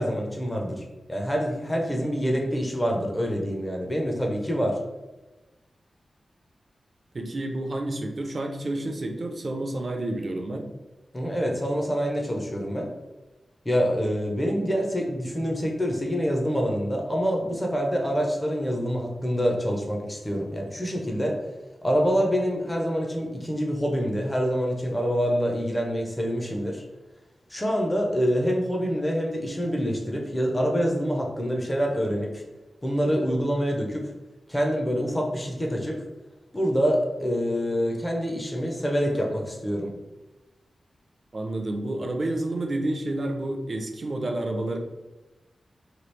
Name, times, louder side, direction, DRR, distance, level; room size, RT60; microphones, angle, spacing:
voice 1, 0.0-4.8 11.1-12.9 13.7-21.4 21.8-26.8 27.5-32.4 32.8-34.1 34.5-36.0 36.5-39.9, equal, 15° left, 0 dB, 0.5 m, -26 dB
voice 2, 7.1-10.7 41.3-44.8, right 1 dB, 40° right, 3 dB, 0.4 m, -29 dB
3.0 x 2.3 x 3.1 m, 1.1 s
wide cardioid pair, 125°, 0 cm